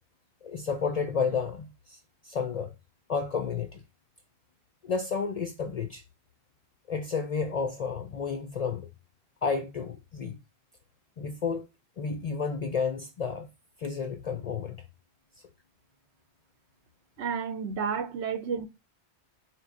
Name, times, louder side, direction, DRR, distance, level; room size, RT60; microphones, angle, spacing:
voice 1, 0.4-2.7 3.1-3.8 4.8-6.0 6.9-8.9 9.4-10.4 11.2-11.7 12.0-13.5 13.8-14.9, left 5 dB, 55° left, 0.4 m, -31 dB
voice 2, 17.2-18.7, right 6 dB, 85° right, 0.9 m, -31 dB
4.4 x 3.0 x 2.5 m
omnidirectional pair, 1.1 m